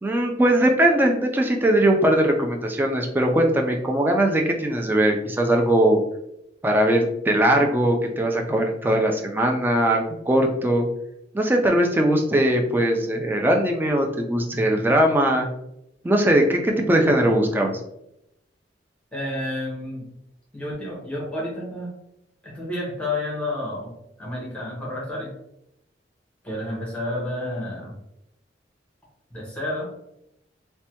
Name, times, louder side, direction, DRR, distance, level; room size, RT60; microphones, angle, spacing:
voice 1, 0.0-6.0 6.6-10.8 11.3-15.5 16.0-17.8, right 1 dB, 10° right, 2 dB, 0.3 m, -20 dB
voice 2, 19.1-20.1 20.5-21.9 22.4-23.9 24.2-25.3 26.4-27.9 29.3-29.8, left 1 dB, 5° left, -5 dB, 0.9 m, -30 dB
3.2 x 2.1 x 2.8 m, 0.81 s
head